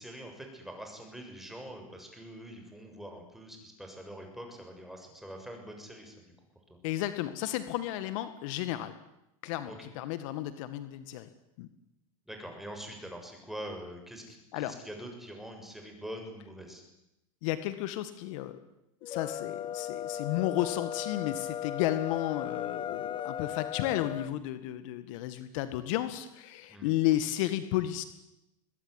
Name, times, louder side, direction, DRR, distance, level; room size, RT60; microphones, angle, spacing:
voice 1, 0.0-6.3 6.7-6.8 9.7-9.9 12.3-16.8 26.7-26.9, equal, ahead, 3 dB, 7.4 m, -44 dB
voice 2, 6.8-9.0 9.4-11.3 11.6-11.7 14.5-14.7 17.4-18.6 19.0-28.0, left 14 dB, 65° left, 12 dB, 2.0 m, -33 dB
sound 1, 19.0-24.3, left 10 dB, 30° left, 0.9 m, -37 dB
22.5 x 21.0 x 10.0 m, 0.88 s
supercardioid pair, 120°, 18 cm